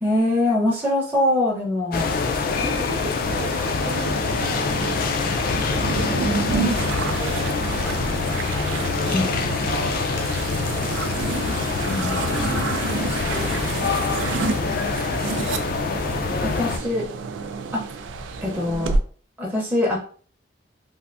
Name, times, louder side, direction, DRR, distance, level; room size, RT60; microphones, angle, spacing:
voice 1, 0.0-2.1 9.1-9.2 11.8-12.3 16.4-17.0 17.7-17.8 18.4-19.0 19.4-20.0, left 1 dB, 10° right, -4 dB, 0.6 m, -23 dB
sound 1, 1.9-16.8, left 4 dB, 50° left, 0.3 m, -25 dB
voice 2, 2.1-4.9 5.4-7.7 8.7-9.9 11.6-11.7 12.2-13.7 14.3-15.6 16.2-16.7, right 2 dB, 50° right, -3 dB, 0.7 m, -38 dB
sound 2, 3.3-19.0, right 4 dB, 75° right, 0.3 m, -30 dB
3.4 x 2.5 x 2.4 m, 0.43 s
head